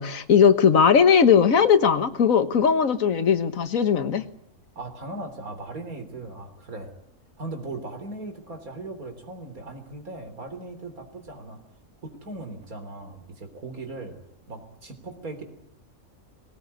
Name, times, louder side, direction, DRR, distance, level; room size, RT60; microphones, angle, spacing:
voice 1, 0.0-4.2, left 7 dB, 70° left, 11 dB, 1.6 m, -19 dB
voice 2, 4.8-6.9 7.4-11.6 12.0-14.2 14.5-15.4, right 2 dB, 85° right, 6 dB, 3.9 m, -38 dB
20.5 x 18.0 x 9.7 m, 0.72 s
omnidirectional pair, 1.5 m